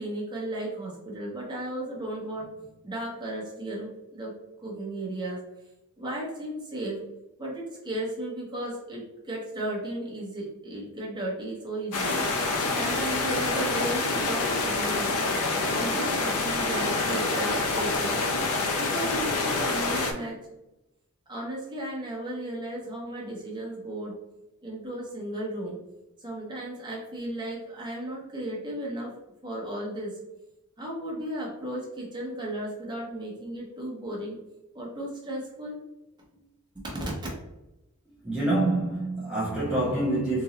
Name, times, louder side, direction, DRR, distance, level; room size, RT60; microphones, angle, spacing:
voice 1, 0.0-4.3 4.6-5.4 6.0-7.0 7.4-15.1 15.7-18.2 18.8-20.4 21.3-24.2 24.6-25.8 26.2-29.1 29.4-30.2 30.8-34.4 34.7-35.8 36.7-37.1, right 1 dB, 20° right, 1.1 m, -35 dB
sound 1, 11.9-20.1, left 3 dB, 80° left, 0.6 m, -27 dB
voice 2, 38.2-40.4, right 2 dB, 5° right, 0.7 m, -26 dB
3.8 x 2.7 x 3.0 m
head